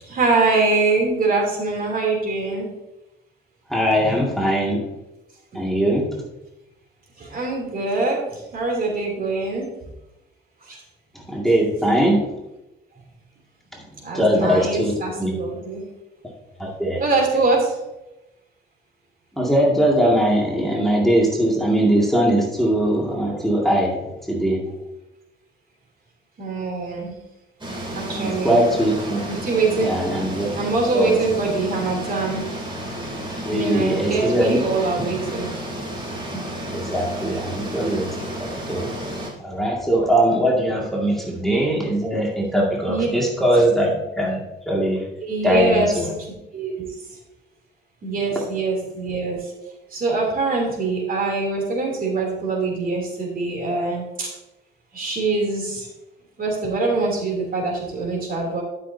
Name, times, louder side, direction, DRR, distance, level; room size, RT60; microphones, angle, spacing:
voice 1, 0.1-2.7 5.5-5.6 7.2-9.7 10.6-10.8 14.0-15.8 17.0-17.8 26.4-27.2 27.9-28.6 29.3-29.9 30.5-32.6 33.5-35.5 36.3-36.4 42.9-43.1 45.2-45.9 46.5-46.7 48.0-49.5 49.9-54.3 54.9-55.9 56.4-58.6, right 3 dB, 45° right, -1 dB, 3.1 m, -23 dB
voice 2, 3.7-4.8 5.5-6.1 11.1-12.4 13.7-13.8 14.1-15.4 16.6-17.0 19.4-24.6 28.1-29.2 29.8-30.5 30.9-31.2 33.4-34.6 35.0-35.1 36.7-38.9 39.4-44.4 44.7-45.1 45.4-46.1, right 1 dB, ahead, -3 dB, 2.1 m, -21 dB
sound 1, 27.6-39.3, right 1 dB, 25° right, 3.2 m, -32 dB
12.0 x 6.4 x 2.8 m, 0.94 s
cardioid pair, 90°, 20 cm